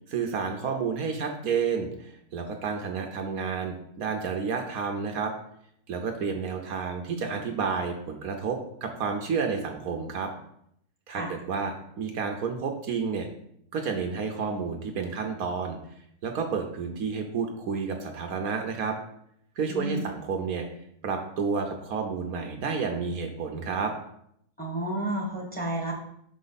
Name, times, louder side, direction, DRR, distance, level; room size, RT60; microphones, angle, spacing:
voice 1, 0.1-5.3 5.9-10.3 11.1-13.3 13.7-15.8 16.2-19.0 19.6-20.7 21.0-23.9, right 5 dB, 70° right, 4 dB, 1.2 m, -30 dB
voice 2, 19.7-20.1 24.6-25.9, right 1 dB, 5° left, -3 dB, 1.4 m, -31 dB
6.1 x 5.1 x 4.0 m, 0.72 s
omnidirectional pair, 1.6 m